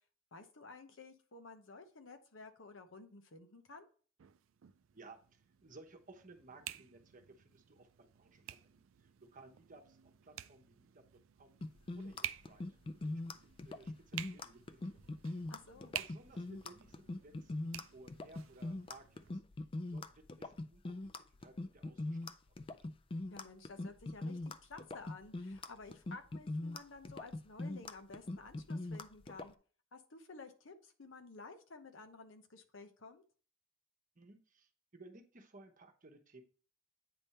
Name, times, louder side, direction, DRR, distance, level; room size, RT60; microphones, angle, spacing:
voice 1, 0.3-3.9 15.5-15.9 23.3-29.5 29.9-33.2, left 3 dB, 75° left, 7 dB, 0.9 m, -53 dB
sound 1, 4.2-19.4, right 12 dB, 85° right, 0.4 m, -51 dB
voice 2, 4.9-11.0 11.4-11.6 11.9-19.4 19.9-22.5 34.1-36.4, right 2 dB, 45° right, 4 dB, 1.0 m, -59 dB
sound 2, 11.6-29.5, left 2 dB, 25° left, 0.4 m, -42 dB
8.9 x 3.5 x 4.2 m, 0.41 s
head